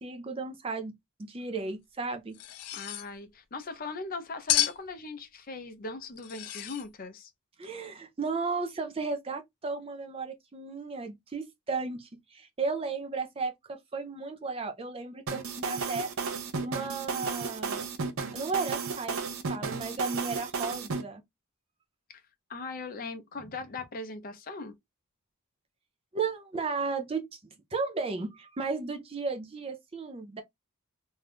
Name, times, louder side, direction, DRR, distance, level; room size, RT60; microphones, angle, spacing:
voice 1, 0.0-2.4 7.6-16.1 16.6-17.9 18.3-21.2 26.1-27.4 27.7-30.4, right 4 dB, 25° right, 0.4 m, -34 dB
sound 1, 2.3-3.1 4.5-4.9 6.2-6.9, left 14 dB, 90° left, 0.4 m, -30 dB
voice 2, 2.7-7.3 22.1-22.2 22.5-24.7, left 3 dB, 40° left, 0.5 m, -39 dB
sound 2, 15.3-21.0, right 5 dB, 65° right, 0.6 m, -33 dB
2.6 x 2.3 x 3.3 m
head